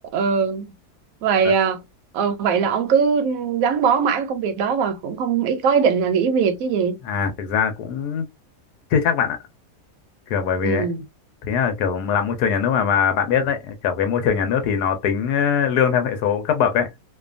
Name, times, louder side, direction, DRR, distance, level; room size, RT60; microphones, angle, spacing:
voice 1, 0.1-0.7 1.2-1.8 2.1-7.0 10.6-11.0, right 6 dB, 70° right, 0.9 m, -20 dB
voice 2, 7.0-8.2 8.9-9.4 10.3-10.9 11.4-16.9, left 7 dB, 80° left, 1.1 m, -21 dB
2.7 x 2.2 x 2.4 m
omnidirectional pair, 1.7 m